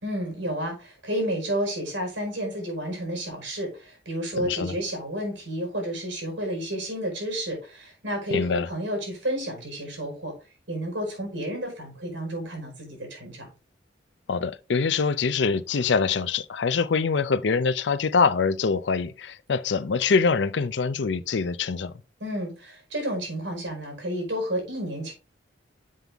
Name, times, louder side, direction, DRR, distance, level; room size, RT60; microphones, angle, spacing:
voice 1, 0.0-10.3 10.7-13.5 22.2-25.1, equal, 80° right, 4.8 m, -31 dB
voice 2, 4.4-4.8 8.3-8.7 14.3-21.9, left 5 dB, 70° left, 0.5 m, -24 dB
7.6 x 5.4 x 3.5 m
head